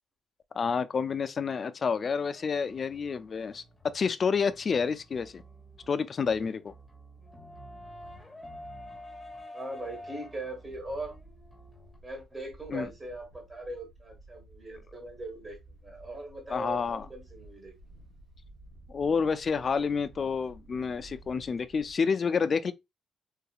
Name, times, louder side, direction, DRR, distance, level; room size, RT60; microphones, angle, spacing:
voice 1, 0.5-3.6 3.9-5.4 5.9-6.7 12.7-12.9 16.5-17.0 18.9-22.7, left 5 dB, 45° left, 0.4 m, -29 dB
sound 1, 2.3-12.0, left 1 dB, 5° left, 1.3 m, -49 dB
voice 2, 9.5-11.1 12.0-17.7, right 1 dB, 20° right, 1.5 m, -40 dB
Wind, 10.6-21.9, right 2 dB, 65° right, 2.2 m, -54 dB
3.9 x 2.8 x 2.3 m
cardioid pair, 90°, 0 cm